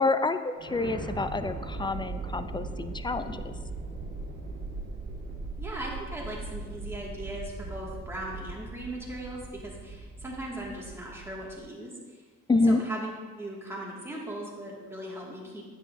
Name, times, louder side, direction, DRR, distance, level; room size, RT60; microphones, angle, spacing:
voice 1, 0.0-3.5 12.5-12.8, left 3 dB, 15° left, 10 dB, 0.4 m, -27 dB
sound 1, 0.6-11.7, right 3 dB, 50° right, 2.0 m, -39 dB
voice 2, 5.6-12.2 12.7-13.1 13.4-15.7, right 1 dB, 10° right, -4 dB, 2.0 m, -39 dB
9.3 x 7.9 x 2.7 m, 1.4 s
cardioid pair, 90°, 30 cm